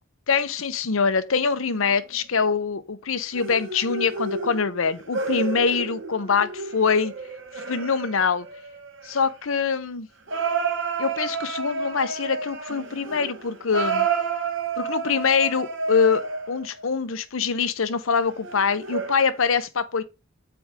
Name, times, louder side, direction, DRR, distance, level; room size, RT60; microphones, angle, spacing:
voice 1, 0.3-7.1 7.5-8.5 9.0-10.1 11.0-14.1 14.8-20.0, left 5 dB, 85° left, 0.8 m, -24 dB
sound 1, 1.7-2.2 3.3-9.3 10.3-16.8 18.1-19.5, right 4 dB, 65° right, 1.3 m, -30 dB
8.8 x 4.7 x 3.5 m
head